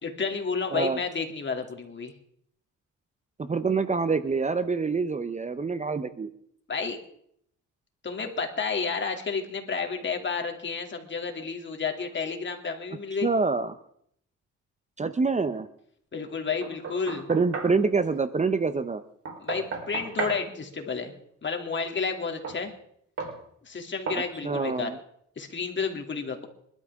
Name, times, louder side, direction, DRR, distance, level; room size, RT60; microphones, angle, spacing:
voice 1, 0.0-2.1 6.7-7.0 8.0-13.3 16.1-17.3 19.4-21.1 21.4-22.7 23.6-24.9 25.4-26.5, left 5 dB, 40° left, 3 dB, 2.8 m, -31 dB
voice 2, 3.4-6.3 13.2-13.7 15.0-15.7 17.3-19.0 24.4-25.0, right 4 dB, 25° right, 11 dB, 0.8 m, -26 dB
Knock, 16.6-17.8 19.2-20.4 22.4-22.6 23.2-23.4 24.1-24.3, right 4 dB, 50° right, 4.1 m, -34 dB
26.5 x 12.0 x 3.7 m, 0.70 s
cardioid pair, 90°, 30 cm